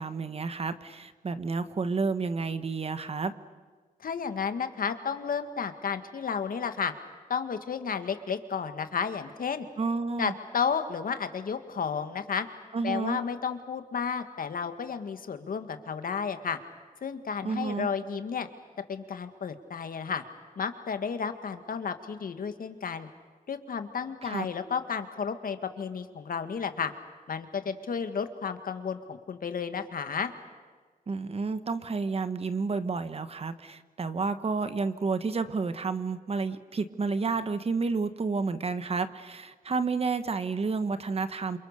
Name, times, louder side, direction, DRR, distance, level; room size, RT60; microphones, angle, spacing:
voice 1, 0.0-3.3 9.8-10.3 12.7-13.2 17.4-17.9 24.2-24.5 31.1-41.6, right 4 dB, 40° right, 11 dB, 1.2 m, -30 dB
voice 2, 4.0-6.9 7.3-9.7 10.2-12.5 12.8-16.6 17.0-18.5 18.9-20.2 20.6-23.1 23.5-26.9 27.3-30.3, left 6 dB, 70° left, 9 dB, 1.9 m, -32 dB
28.5 x 28.0 x 6.8 m, 1.5 s
wide cardioid pair, 180°, 15 cm